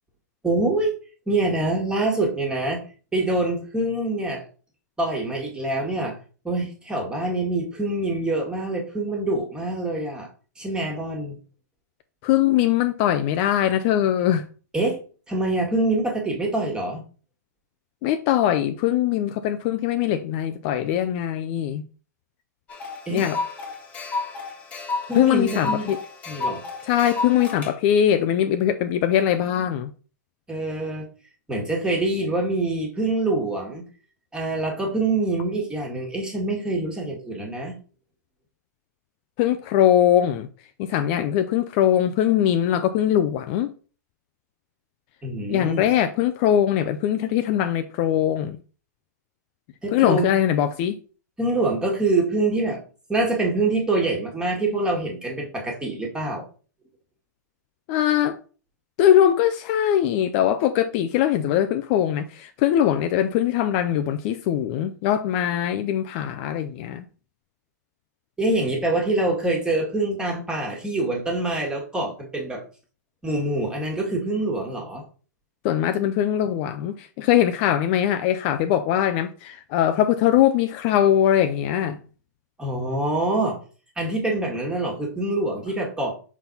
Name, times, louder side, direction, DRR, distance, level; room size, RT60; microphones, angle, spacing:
voice 1, 0.4-0.9 1.3-2.8 3.1-4.4 5.0-6.2 6.4-10.3 10.6-11.4 14.7-15.0 15.3-17.0 23.1-23.3 25.1-25.9 26.3-26.6 30.5-31.1 31.5-33.8 34.3-37.7 45.2-45.8 49.8-50.3 51.4-52.8 53.1-56.4 68.4-72.6 73.2-75.0 82.6-83.6 84.0-86.1, right 2 dB, 10° right, 1.6 m, -25 dB
voice 2, 12.2-14.5 18.0-21.9 23.1-23.4 25.1-26.0 26.8-29.9 39.4-40.5 40.8-43.7 45.5-48.6 49.9-51.0 57.9-58.4 59.0-67.0 75.6-82.0, left 11 dB, 35° left, 0.4 m, -21 dB
sound 1, 22.7-27.7, left 3 dB, 15° left, 1.5 m, -31 dB
6.0 x 3.9 x 4.0 m
hypercardioid pair, 140°, 10 cm